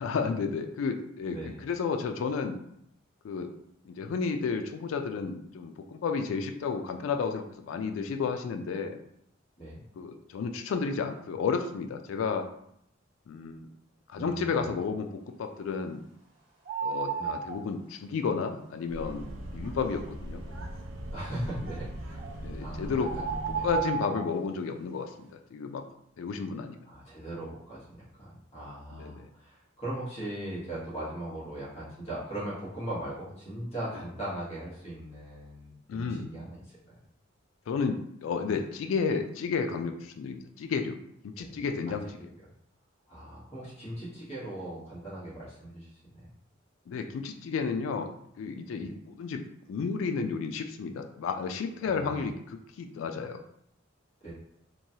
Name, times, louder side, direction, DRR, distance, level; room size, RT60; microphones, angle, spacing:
voice 1, 0.0-2.6 3.2-3.5 3.8-9.0 10.0-12.5 13.3-13.7 14.1-16.0 16.8-19.2 19.5-20.4 22.4-23.1 23.6-25.8 26.2-26.8 28.9-29.3 35.9-36.3 37.7-41.0 41.2-42.0 46.9-48.1 48.4-49.4 49.7-53.4, left 5 dB, 85° left, 6 dB, 0.3 m, -32 dB
voice 2, 1.2-1.6 9.6-9.8 14.1-14.7 17.2-17.3 21.1-22.2 22.6-23.2 23.5-23.7 26.9-36.6 36.9-37.0 41.4-41.5 43.1-45.9 46.1-46.3 48.7-48.9 51.8-52.3 54.2-54.3, right 1 dB, 35° left, -8 dB, 1.2 m, -39 dB
sound 1, 16.7-17.6 22.2-22.3 23.0-24.3, right 7 dB, 60° right, 1.2 m, -32 dB
sound 2, 18.9-23.8, right 1 dB, 90° right, 0.4 m, -39 dB
3.0 x 2.2 x 2.7 m, 0.72 s
head